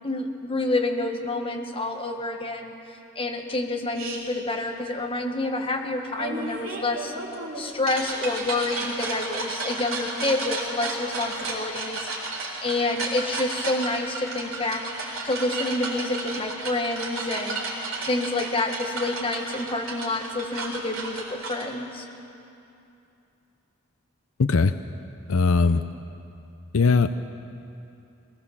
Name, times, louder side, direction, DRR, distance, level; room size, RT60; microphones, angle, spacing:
voice 1, 0.0-2.7 3.1-7.1 7.5-12.1 12.6-14.8 15.2-22.0, left 2 dB, 25° left, 2 dB, 1.7 m, -28 dB
sound 1, 3.9-4.2 6.2-21.6, right 3 dB, 70° right, 4.1 m, -33 dB
voice 2, 24.4-24.7 25.3-25.8 26.7-27.1, left 4 dB, 75° left, 11 dB, 0.6 m, -19 dB
21.5 x 18.5 x 7.4 m, 2.7 s
head